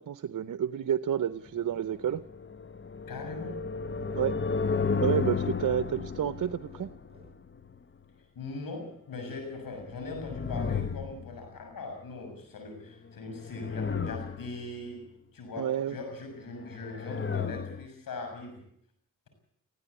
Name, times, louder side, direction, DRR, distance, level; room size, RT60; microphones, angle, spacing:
voice 1, 0.0-2.2 4.1-4.4 5.0-6.9 15.6-16.0, right 9 dB, 65° right, 13 dB, 0.8 m, -30 dB
sound 1, 1.4-2.2 3.0-3.4 3.8-4.2 4.7-4.8 5.1-5.2 5.8-7.3 9.5-9.8 10.1-10.9, right 1 dB, 20° right, 7.0 m, -56 dB
sound 2, 2.1-7.8 9.7-11.6 13.2-14.7 16.5-17.9, left 5 dB, 35° left, 1.1 m, -33 dB
voice 2, 3.1-3.6 8.4-15.0 15.3-18.6, left 3 dB, 85° left, 5 dB, 6.9 m, -40 dB
20.0 x 15.5 x 8.3 m, 0.70 s
cardioid pair, 45°, 33 cm